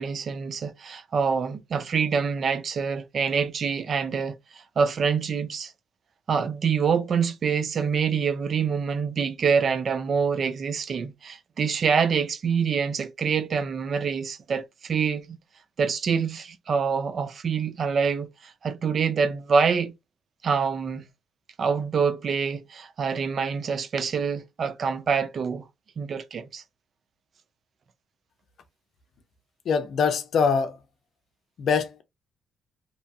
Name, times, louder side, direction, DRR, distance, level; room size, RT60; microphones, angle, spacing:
voice 1, 0.0-5.7 6.3-15.4 15.8-19.9 20.4-21.1 21.6-25.6 26.0-26.6, right 6 dB, 50° right, 0.4 m, -26 dB
voice 2, 29.7-30.8 31.6-32.0, left 6 dB, 65° left, 0.6 m, -23 dB
2.8 x 2.2 x 2.6 m
cardioid pair, 90°, 0 cm